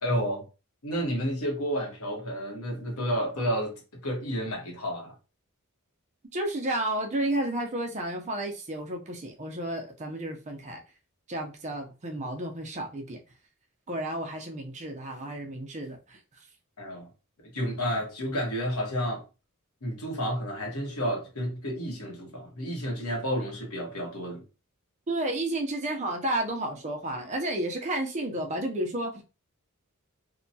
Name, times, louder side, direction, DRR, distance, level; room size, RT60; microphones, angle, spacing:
voice 1, 0.0-0.4 0.8-5.1 16.8-17.1 17.4-19.2 19.8-24.4, equal, 85° left, 1.0 m, -31 dB
voice 2, 6.3-10.8 11.3-13.2 13.9-16.2 25.1-29.2, right 1 dB, 35° right, 0.5 m, -32 dB
2.8 x 2.2 x 2.7 m
head